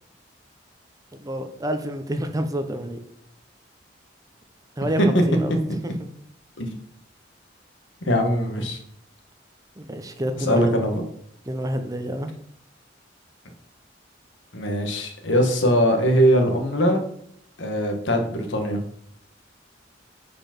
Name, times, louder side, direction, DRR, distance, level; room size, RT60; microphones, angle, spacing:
voice 1, 1.2-3.0 4.8-5.5 5.8-6.1 9.8-10.7 11.5-12.3, equal, 20° right, 7 dB, 0.6 m, -28 dB
voice 2, 8.0-8.8 10.4-11.0 14.5-17.0 17.6-18.8, equal, 85° left, 4 dB, 1.4 m, -21 dB
4.9 x 4.9 x 5.9 m, 0.68 s
head